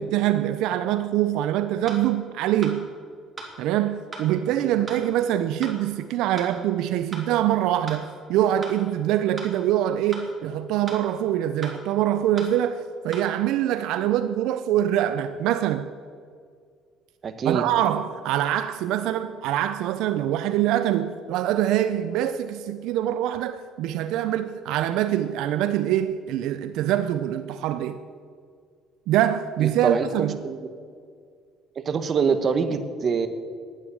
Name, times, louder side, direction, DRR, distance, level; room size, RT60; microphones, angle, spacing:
voice 1, 0.0-2.9 3.6-15.9 17.4-28.0 29.1-30.4, right 12 dB, 80° right, 0.5 m, -24 dB
sound 1, 1.9-2.0 2.6-2.8 3.4-3.5 4.1-4.3 4.9-5.0 5.6-5.8 6.4-6.5 7.1-7.3 7.9-8.0 8.6-8.8 9.4-9.5 10.1-10.3 10.9-11.0 11.6-11.8 12.4-12.5 13.1-13.2, right 3 dB, 20° right, 3.0 m, -37 dB
voice 2, 17.2-17.6 29.6-30.1 30.4-30.6 31.8-33.3, right 6 dB, 40° right, 1.1 m, -24 dB
9.8 x 9.2 x 8.6 m
cardioid pair, 110°, 0 cm